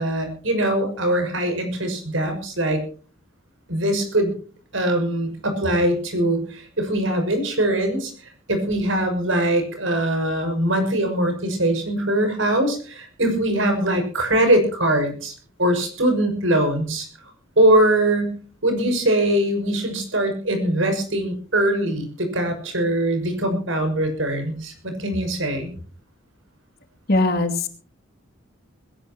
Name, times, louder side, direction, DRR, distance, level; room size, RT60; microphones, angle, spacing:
voice 1, 0.0-2.8 3.7-4.3 4.7-8.1 8.5-15.3 15.6-17.1 17.6-18.3 18.6-25.7, right 1 dB, 75° right, 6 dB, 5.9 m, -22 dB
voice 2, 27.1-27.7, left 2 dB, 55° left, 5 dB, 2.6 m, -20 dB
21.0 x 17.5 x 2.9 m, 0.40 s
head